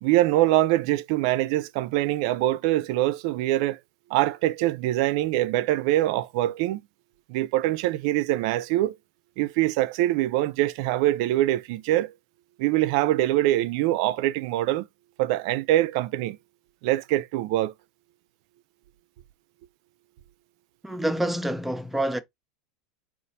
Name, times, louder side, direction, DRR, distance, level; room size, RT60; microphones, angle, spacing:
voice 1, 0.0-3.8 4.1-6.8 7.3-8.9 9.4-12.1 12.6-14.9 15.2-16.4 16.8-17.7, right 15 dB, 65° right, 0.4 m, -24 dB
voice 2, 20.8-22.2, right 1 dB, 5° right, 0.6 m, -27 dB
3.9 x 2.4 x 4.0 m
supercardioid pair, 115°, 4 cm